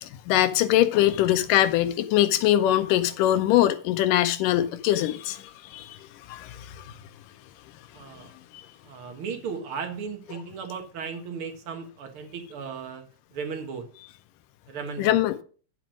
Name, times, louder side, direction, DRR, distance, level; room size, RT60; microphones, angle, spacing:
voice 1, 0.0-6.0 6.3-6.8 8.5-8.6 15.0-15.4, left 13 dB, 80° left, 2.3 m, -22 dB
voice 2, 7.9-8.3 8.8-13.0 13.3-13.9 14.7-15.2, right 5 dB, 50° right, 1.9 m, -36 dB
9.7 x 6.1 x 5.1 m
omnidirectional pair, 3.8 m